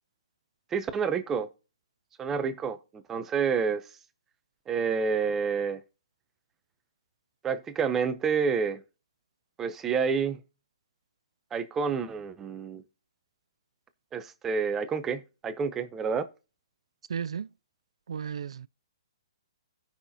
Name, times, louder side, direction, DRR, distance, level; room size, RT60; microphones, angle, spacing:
voice 1, 0.7-1.5 2.2-3.8 4.7-5.8 7.4-8.8 9.6-10.4 11.5-12.8 14.1-16.3, right 6 dB, 10° right, 0.6 m, -29 dB
voice 2, 17.1-17.5 18.1-18.7, right 7 dB, 80° right, 0.3 m, -34 dB
16.0 x 5.7 x 2.7 m
hypercardioid pair, 170°, 3 cm